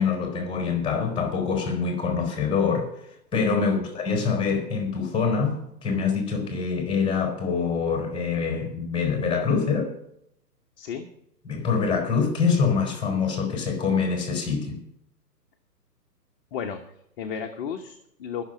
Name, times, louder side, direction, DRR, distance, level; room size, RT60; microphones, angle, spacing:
voice 1, 0.0-2.9 3.3-9.9 11.5-14.8, left 5 dB, 10° left, 3.8 m, -25 dB
voice 2, 16.5-18.5, left 7 dB, 35° left, 1.1 m, -34 dB
20.5 x 6.9 x 6.1 m
figure-of-eight pair, 130°, 50 cm